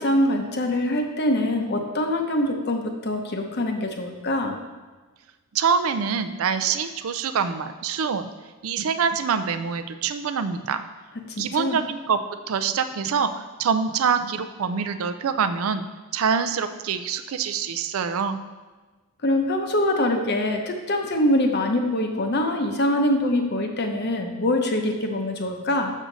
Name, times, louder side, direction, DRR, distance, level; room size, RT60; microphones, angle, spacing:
voice 1, 0.0-4.6 11.3-11.8 19.2-25.9, left 1 dB, 50° left, 4 dB, 0.8 m, -24 dB
voice 2, 5.5-8.3 8.6-10.8 11.4-12.2 12.5-15.8 16.1-18.4, right 6 dB, 70° right, 9 dB, 0.4 m, -25 dB
6.4 x 6.2 x 3.9 m, 1.3 s
head